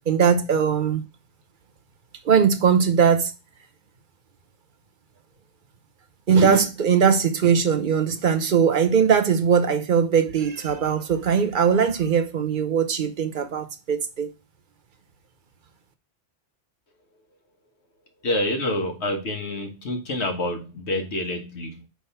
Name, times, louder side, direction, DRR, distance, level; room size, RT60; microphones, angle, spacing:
voice 1, 0.1-1.0 2.2-3.3 6.3-14.3, right 7 dB, 50° right, 0.9 m, -20 dB
voice 2, 18.2-21.9, left 1 dB, 80° left, 1.6 m, -27 dB
5.2 x 3.5 x 5.5 m
omnidirectional pair, 1.1 m